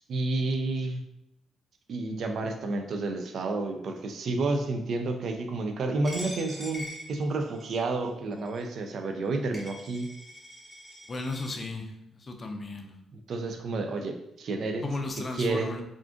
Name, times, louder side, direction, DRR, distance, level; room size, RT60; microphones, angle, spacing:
voice 1, 0.1-1.0 1.9-10.1 13.1-15.0 15.3-15.7, right 3 dB, 55° right, 5 dB, 0.3 m, -30 dB
Coin (dropping), 6.0-7.8 8.5-8.6 9.2-9.3 9.5-11.5, equal, ahead, 0.8 m, -43 dB
voice 2, 11.1-11.9 12.2-12.9 14.8-15.8, left 2 dB, 30° left, 4 dB, 0.4 m, -34 dB
2.4 x 2.4 x 3.5 m, 0.82 s
cardioid pair, 135°, 0 cm